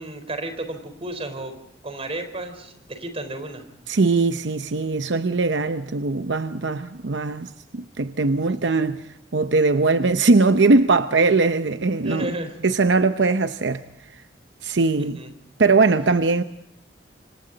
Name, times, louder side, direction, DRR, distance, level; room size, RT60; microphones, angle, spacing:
voice 1, 0.0-1.5 1.8-3.7 8.5-8.8 12.0-12.6 15.0-15.3, right 1 dB, 35° right, 4.1 m, -33 dB
voice 2, 3.9-9.0 9.3-12.3 12.6-13.8 14.6-15.2 15.6-16.4, right 3 dB, 80° right, 0.8 m, -20 dB
27.5 x 26.0 x 4.0 m
head